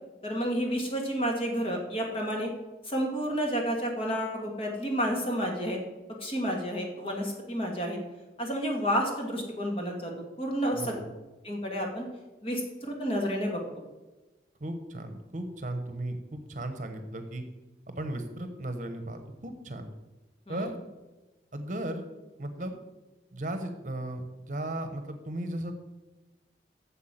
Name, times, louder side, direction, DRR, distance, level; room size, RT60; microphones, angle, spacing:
voice 1, 0.2-2.5 2.8-5.8 6.2-8.0 8.4-10.1 10.4-11.0 11.4-12.1 12.4-13.9 20.5-20.6, equal, 30° left, 1 dB, 2.1 m, -30 dB
voice 2, 10.7-11.1 14.6-17.4 17.9-19.9 20.5-20.8 21.5-22.1 22.4-22.8 23.3-25.7, right 1 dB, 45° right, 7 dB, 1.1 m, -36 dB
8.4 x 7.3 x 7.5 m, 1.1 s
head